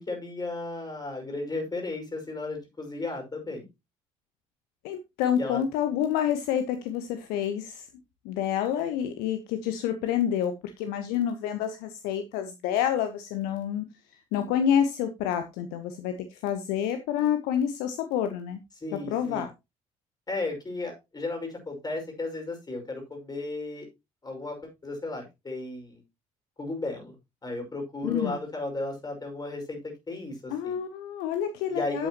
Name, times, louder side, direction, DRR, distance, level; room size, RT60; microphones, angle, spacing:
voice 1, 0.0-3.6 5.3-5.6 18.8-19.5 20.3-23.9 24.2-26.0 26.6-27.2 27.4-30.8 31.7-32.1, left 2 dB, 25° left, 2 dB, 5.7 m, -34 dB
voice 2, 4.8-7.8 8.2-13.8 14.3-16.1 16.4-18.6 19.1-19.5 28.0-28.4 30.5-32.1, left 9 dB, 60° left, 9 dB, 1.0 m, -28 dB
12.0 x 8.3 x 3.0 m, 0.24 s
figure-of-eight pair, 50°, 17 cm